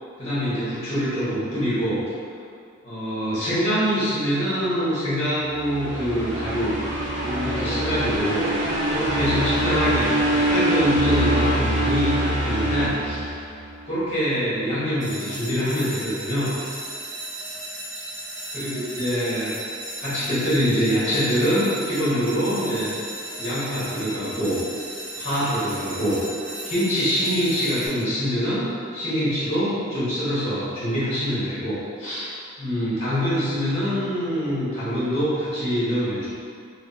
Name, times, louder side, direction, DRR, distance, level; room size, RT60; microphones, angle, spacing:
voice 1, 0.2-2.0 2.8-6.7 7.2-8.5 8.9-13.4 13.8-16.5 18.5-19.5 20.0-23.1 23.4-24.6 25.2-26.2 26.6-32.3 32.6-36.3, equal, 35° left, -10 dB, 1.2 m, -24 dB
sound 1, 5.5-13.8, right 1 dB, 70° right, 0.9 m, -24 dB
sound 2, 15.0-27.9, right 1 dB, 40° right, 1.1 m, -35 dB
4.6 x 2.0 x 2.7 m, 2.3 s
head